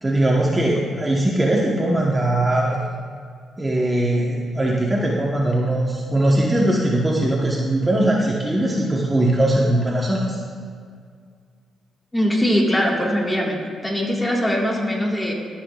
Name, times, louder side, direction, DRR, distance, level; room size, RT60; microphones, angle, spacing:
voice 1, 0.0-2.8 3.6-10.3, right 1 dB, 15° right, -3 dB, 1.1 m, -20 dB
voice 2, 12.1-13.6 13.8-15.3, equal, 15° left, -2 dB, 1.7 m, -21 dB
18.0 x 6.0 x 2.4 m, 2.1 s
cardioid pair, 85°, 0 cm